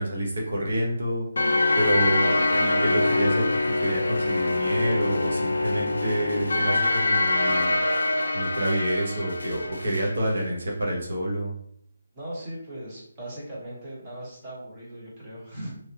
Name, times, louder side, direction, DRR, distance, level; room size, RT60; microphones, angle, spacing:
voice 1, 0.0-7.7 8.3-11.5, right 1 dB, 70° right, -1 dB, 1.0 m, -28 dB
sound 1, 1.4-10.1, left 2 dB, 85° left, 0.4 m, -24 dB
voice 2, 12.1-15.7, right 1 dB, 15° right, -5 dB, 0.9 m, -38 dB
3.1 x 2.8 x 2.6 m, 0.65 s
hypercardioid pair, 175°, 0 cm